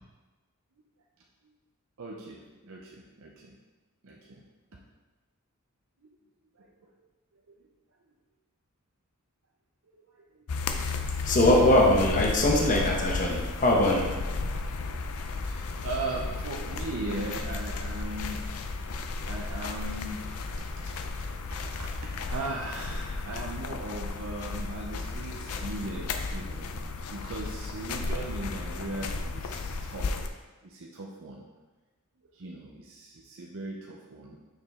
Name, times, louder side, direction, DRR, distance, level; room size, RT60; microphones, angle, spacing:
voice 1, 2.0-3.5 4.0-4.4 4.7-4.8 6.0-6.1 6.6-6.9 7.5-7.7 9.9-10.4 14.9-15.0 15.4-18.4 19.2-20.2 21.5-26.8 27.0-30.2 30.6-31.4 32.3-34.4, right 2 dB, 65° right, -1 dB, 0.7 m, -38 dB
sound 1, 10.5-30.3, left 3 dB, 90° left, 0.5 m, -34 dB
voice 2, 11.2-14.1, left 1 dB, 40° left, -1 dB, 0.9 m, -22 dB
6.4 x 5.1 x 3.6 m, 1.2 s
head